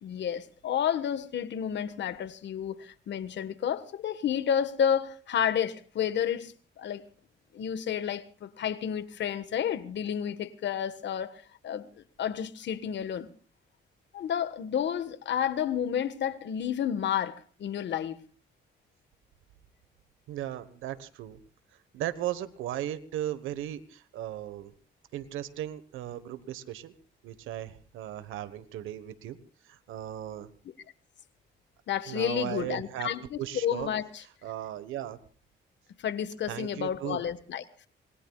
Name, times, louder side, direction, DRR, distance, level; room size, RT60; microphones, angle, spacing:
voice 1, 0.0-7.0 7.5-11.9 12.2-13.3 14.1-18.2 31.9-34.2 36.0-37.6, left 9 dB, 65° left, 1.5 m, -31 dB
voice 2, 20.3-21.4 21.9-24.7 25.1-26.9 27.2-29.4 29.6-30.5 32.1-33.1 33.4-33.9 34.4-35.2 36.5-37.2, right 12 dB, 90° right, 1.3 m, -36 dB
27.0 x 20.0 x 2.4 m
cardioid pair, 90°, 20 cm